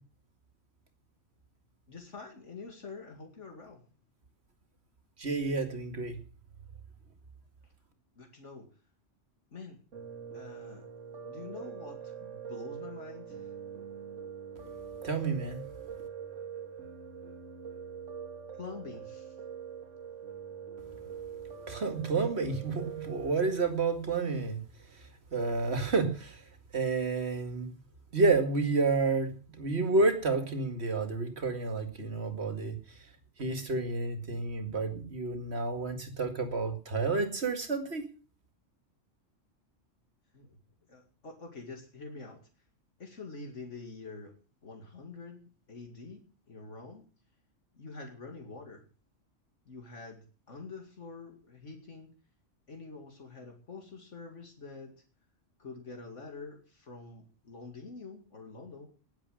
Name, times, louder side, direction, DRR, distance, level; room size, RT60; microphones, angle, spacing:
voice 1, 1.9-3.8 8.2-8.7 9.5-9.8 10.3-10.9 11.2-13.5 18.6-19.4 40.3-40.6 40.9-42.4 43.0-44.3 44.6-47.0 47.7-48.8 49.7-52.1 52.7-55.0 55.6-58.9, left 4 dB, 70° left, 3 dB, 2.6 m, -46 dB
voice 2, 5.2-6.2 15.0-15.6 21.7-24.6 24.9-26.4 26.7-27.8 28.1-33.0 33.4-38.1, right 3 dB, 55° right, 7 dB, 2.4 m, -30 dB
Piano, 9.9-23.6, right 7 dB, 80° right, 2.4 m, -44 dB
19.5 x 7.6 x 6.4 m, 0.38 s
omnidirectional pair, 1.3 m